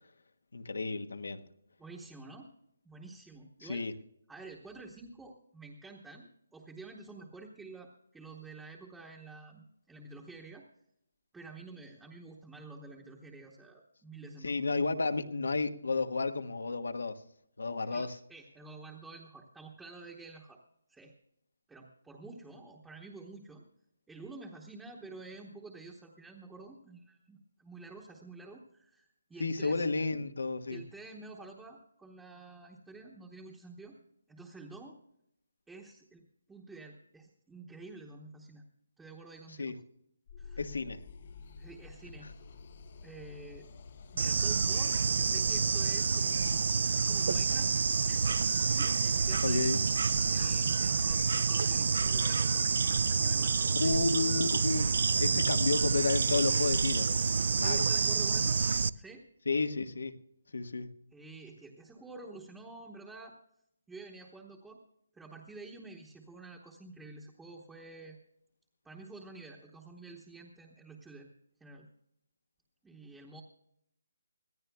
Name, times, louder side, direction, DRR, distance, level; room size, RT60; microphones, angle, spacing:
voice 1, 0.5-1.4 3.6-3.9 14.2-17.2 17.6-18.2 29.4-30.8 39.6-39.7 40.6-41.0 49.4-49.8 53.8-54.9 55.2-57.1 57.5-57.9 59.5-60.2 60.5-60.9, left 3 dB, 90° left, 8 dB, 1.3 m, -32 dB
voice 2, 1.8-2.5 2.8-3.9 4.3-10.7 11.3-14.6 17.8-20.6 20.9-21.1 21.7-23.6 24.1-29.9 30.7-34.0 34.3-35.0 35.7-38.6 39.0-39.8 40.4-40.6 41.6-42.3 43.0-43.7 44.1-47.7 48.1-48.3 48.6-52.7 53.1-54.0 54.9-55.0 57.6-58.6 58.9-59.3 61.1-63.4 63.9-64.8 65.1-68.2 68.8-71.3 71.6-71.9 72.8-73.4, right 3 dB, 5° right, -2 dB, 1.0 m, -49 dB
sound 1, 40.3-46.6, left 5 dB, 35° left, 0.6 m, -50 dB
Bird / Insect, 44.2-58.9, right 5 dB, 50° right, 0.4 m, -28 dB
25.0 x 15.5 x 2.3 m, 0.76 s
hypercardioid pair, 175°, 0 cm